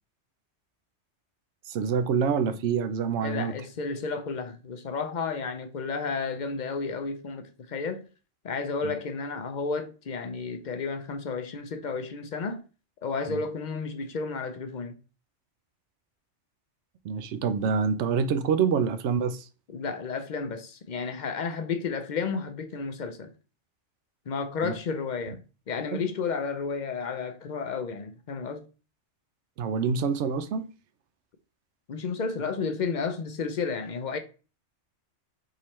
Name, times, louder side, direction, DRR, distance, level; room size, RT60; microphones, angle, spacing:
voice 1, 1.7-3.5 8.8-8.9 13.3-13.4 17.0-19.5 24.6-24.7 25.9-26.0 29.6-30.6, right 6 dB, 75° right, 0.9 m, -26 dB
voice 2, 3.2-8.0 8.4-12.6 13.0-15.0 19.7-23.3 24.3-25.4 25.7-28.6 31.9-34.2, left 5 dB, 50° left, 0.6 m, -32 dB
3.8 x 3.1 x 4.2 m
omnidirectional pair, 1.2 m